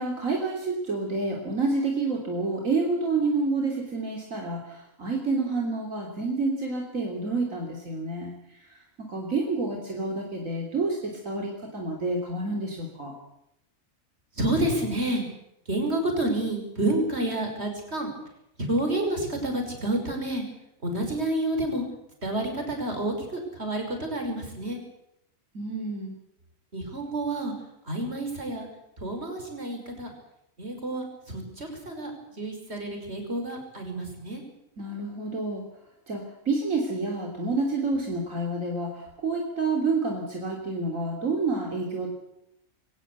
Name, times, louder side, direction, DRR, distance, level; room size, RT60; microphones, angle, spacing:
voice 1, 0.0-8.3 9.1-13.1 25.5-26.2 34.8-35.6 36.1-42.1, right 3 dB, 70° right, 0 dB, 3.7 m, -28 dB
voice 2, 14.4-15.2 15.7-18.1 18.6-20.4 20.8-21.8 22.2-24.8 26.7-27.5 27.8-28.7 29.0-30.1 30.6-32.1 32.4-34.4, right 1 dB, 50° right, 4 dB, 5.8 m, -29 dB
23.5 x 17.5 x 8.3 m, 0.82 s
omnidirectional pair, 1.4 m